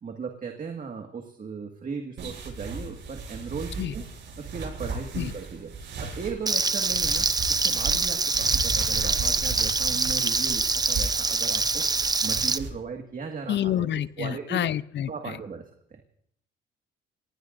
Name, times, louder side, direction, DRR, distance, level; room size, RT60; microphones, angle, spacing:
voice 1, 0.0-4.1 4.4-11.8 12.2-13.9 14.2-14.7 15.1-16.0, right 5 dB, 45° right, 3 dB, 1.9 m, -37 dB
sound 1, 2.2-12.7, right 3 dB, 65° right, 7.5 m, -36 dB
Frying (food), 6.5-12.6, right 3 dB, 20° right, 0.7 m, -25 dB
voice 2, 13.5-15.4, left 11 dB, 65° left, 17 dB, 0.6 m, -28 dB
28.5 x 19.0 x 2.6 m, 0.67 s
cardioid pair, 90°, 20 cm